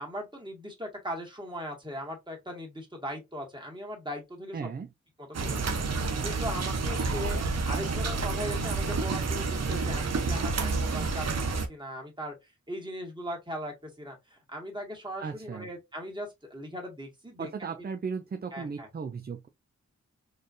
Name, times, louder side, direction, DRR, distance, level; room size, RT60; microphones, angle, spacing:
voice 1, 0.0-4.7 5.3-11.3 11.7-17.5 17.8-17.9 18.5-18.9, equal, 15° right, 2.0 m, -39 dB
voice 2, 4.5-4.9 15.2-15.7 17.4-19.5, right 5 dB, 35° right, 0.4 m, -36 dB
sound 1, 5.3-11.7, right 4 dB, 60° right, 0.8 m, -29 dB
4.2 x 3.3 x 2.6 m
wide cardioid pair, 70°, 30 cm